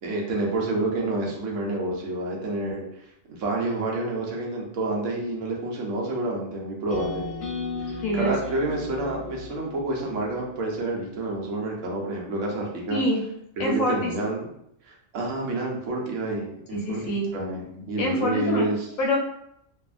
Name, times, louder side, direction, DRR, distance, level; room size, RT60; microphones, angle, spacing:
voice 1, 0.0-2.9 3.3-7.3 7.8-13.0 13.6-14.4 14.9-18.9, right 2 dB, 75° right, -2 dB, 1.0 m, -29 dB
sound 1, 6.9-11.0, left 4 dB, 60° left, 1.0 m, -36 dB
voice 2, 8.0-8.3 12.9-13.2 13.6-14.1 16.7-17.3 18.0-18.7 19.0-19.2, left 1 dB, 90° left, 0 dB, 1.1 m, -25 dB
2.7 x 2.5 x 2.4 m, 0.75 s
omnidirectional pair, 1.3 m